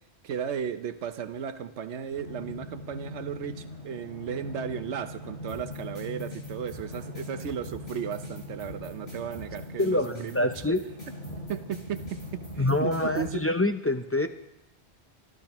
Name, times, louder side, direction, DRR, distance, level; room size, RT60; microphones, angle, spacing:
voice 1, 0.2-10.5 11.3-12.2 12.5-13.5, right 7 dB, 80° right, 11 dB, 1.1 m, -35 dB
sound 1, 2.1-13.2, left 2 dB, 80° left, 6.2 m, -41 dB
sound 2, 5.5-13.3, left 1 dB, 65° left, 7.6 m, -45 dB
voice 2, 9.8-10.8 12.6-14.3, left 2 dB, 20° left, 6 dB, 0.3 m, -26 dB
25.5 x 13.5 x 3.0 m, 0.87 s
omnidirectional pair, 1.2 m